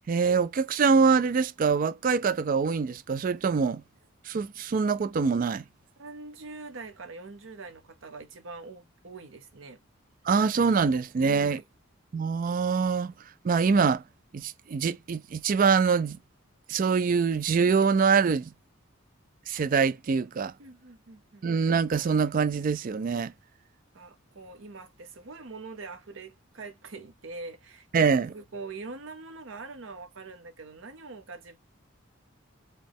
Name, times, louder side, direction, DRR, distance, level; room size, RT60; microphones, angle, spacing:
voice 1, 0.1-3.8 4.2-5.6 10.2-11.6 12.1-13.1 13.4-14.0 14.3-16.2 16.7-18.5 19.5-20.5 21.4-23.3 27.9-28.3, right 5 dB, 40° right, 0.3 m, -24 dB
voice 2, 6.0-9.8 11.2-11.6 20.6-21.5 23.9-31.6, right 3 dB, 70° right, 0.8 m, -43 dB
4.1 x 2.3 x 3.4 m
head